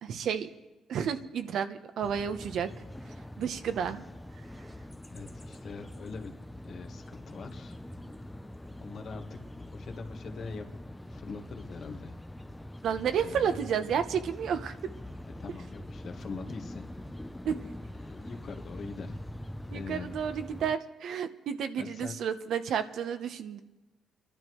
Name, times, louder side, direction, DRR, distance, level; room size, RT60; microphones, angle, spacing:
voice 1, 0.0-0.5 0.9-2.7 3.4-4.0 12.8-14.7 17.4-17.6 19.7-23.6, right 8 dB, 70° right, 8 dB, 0.9 m, -31 dB
sound 1, 2.0-20.8, left 1 dB, 5° left, 0.6 m, -44 dB
voice 2, 5.1-6.3 6.6-7.7 8.2-8.3 8.8-10.7 11.1-12.2 13.2-13.6 15.4-16.8 18.0-19.2 19.7-20.1 21.8-22.2, left 4 dB, 55° left, 4 dB, 1.5 m, -43 dB
29.0 x 12.0 x 3.1 m, 1.1 s
cardioid pair, 90°, 0 cm